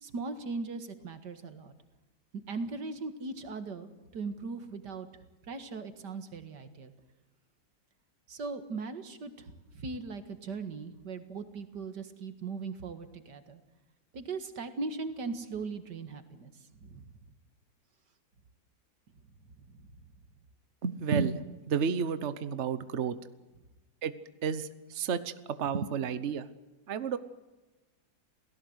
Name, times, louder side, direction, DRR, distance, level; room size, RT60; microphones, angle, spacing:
voice 1, 0.0-1.7 2.5-5.1 5.5-6.9 8.3-13.6 14.1-16.5 16.8-17.1 19.7-19.9, right 4 dB, 85° right, 9 dB, 2.5 m, -39 dB
voice 2, 20.8-21.4 21.7-23.2 24.0-24.1 24.4-25.3 25.6-26.5 26.9-27.2, right 6 dB, 45° right, 13 dB, 1.3 m, -31 dB
28.5 x 18.0 x 8.1 m, 1.1 s
omnidirectional pair, 1.8 m